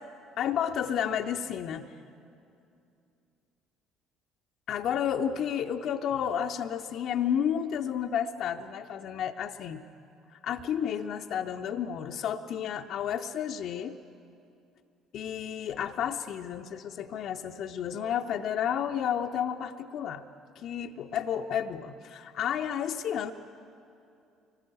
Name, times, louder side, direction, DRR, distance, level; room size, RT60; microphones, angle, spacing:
voice 1, 0.4-1.9 4.7-9.8 10.4-14.0 15.1-20.2 20.6-23.3, left 8 dB, 50° left, 5 dB, 0.7 m, -31 dB
24.5 x 19.5 x 7.9 m, 2.6 s
figure-of-eight pair, 50°, 0 cm